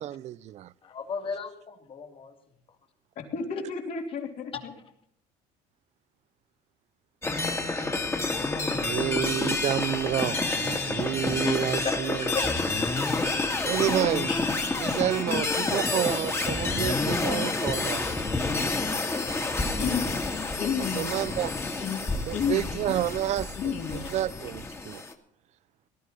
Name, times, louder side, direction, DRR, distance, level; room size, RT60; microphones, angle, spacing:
voice 1, 0.0-0.7 8.6-12.3 13.6-14.3 14.8-18.0 21.0-21.5 22.3-25.0, right 12 dB, 45° right, 0.5 m, -30 dB
voice 2, 0.8-2.3 4.5-4.6 11.4-11.6 11.8-11.9 12.3-12.4 14.3-14.4 23.9-24.1 24.4-24.5, left 6 dB, 35° left, 2.5 m, -34 dB
voice 3, 3.3-4.7 19.8-20.1 20.5-21.1 21.8-22.0 22.3-22.9 23.6-24.0, left 7 dB, 55° left, 3.7 m, -31 dB
sound 1, 7.2-25.1, left 3 dB, 15° left, 2.1 m, -29 dB
18.5 x 12.5 x 4.1 m
cardioid pair, 125°, 15 cm